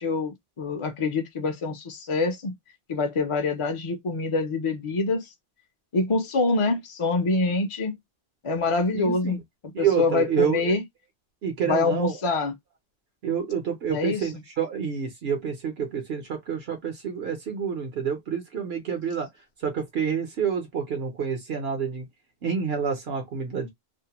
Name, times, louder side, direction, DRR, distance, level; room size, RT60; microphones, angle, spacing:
voice 1, 0.0-2.5 2.9-5.3 5.9-8.0 8.4-9.4 9.8-10.8 11.6-12.5 13.9-14.3, left 3 dB, 45° left, 0.4 m, -25 dB
voice 2, 8.9-9.4 9.7-10.8 11.4-12.1 13.2-19.3 19.6-22.0 22.4-23.7, right 7 dB, 75° right, 1.0 m, -28 dB
2.5 x 2.1 x 2.9 m
omnidirectional pair, 1.1 m